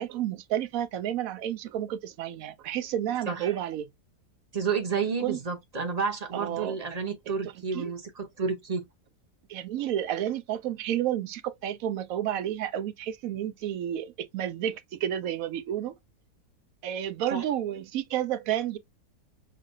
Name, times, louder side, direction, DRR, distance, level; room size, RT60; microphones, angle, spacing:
voice 1, 0.0-3.9 5.2-5.4 6.3-6.8 7.7-7.9 9.5-16.0 16.8-18.8, right 11 dB, 70° right, 0.9 m, -31 dB
voice 2, 4.5-8.8 17.3-17.4, right 5 dB, 35° right, 0.7 m, -30 dB
6.5 x 2.5 x 2.6 m
omnidirectional pair, 1.7 m